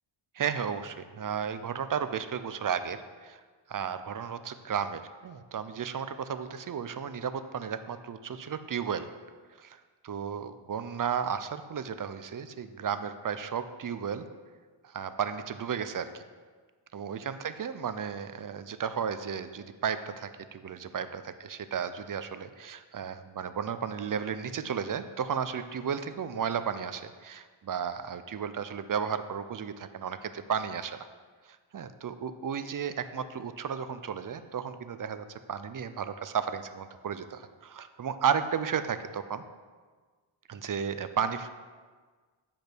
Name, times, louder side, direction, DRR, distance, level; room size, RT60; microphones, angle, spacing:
voice 1, 0.4-3.4 3.7-9.1 10.0-14.3 14.8-16.2 16.9-31.0 31.7-39.4 40.5-41.5, right 7 dB, 45° right, 11 dB, 0.5 m, -33 dB
8.7 x 5.3 x 6.0 m, 1.5 s
wide cardioid pair, 165°, 49 cm